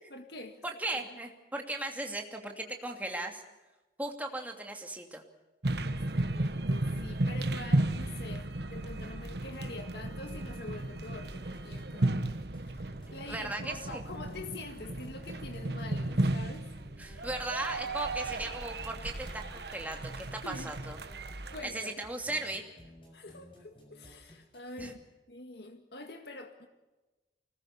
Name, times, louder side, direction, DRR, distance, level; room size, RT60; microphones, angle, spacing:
voice 1, 0.1-0.6 1.1-1.2 5.7-12.2 12.6-16.7 20.4-20.7 21.5-22.0 23.1-25.0 25.3-26.7, left 2 dB, 70° left, 5 dB, 1.9 m, -46 dB
voice 2, 0.6-3.4 4.0-5.2 13.3-14.0 17.0-21.0 21.6-22.6 24.8-24.9, right 2 dB, 10° right, 2 dB, 2.7 m, -37 dB
sound 1, 5.6-21.6, right 1 dB, 70° right, 1.3 m, -34 dB
sound 2, 9.3-24.9, equal, 30° left, 6.7 m, -55 dB
24.5 x 19.5 x 7.0 m, 1.1 s
head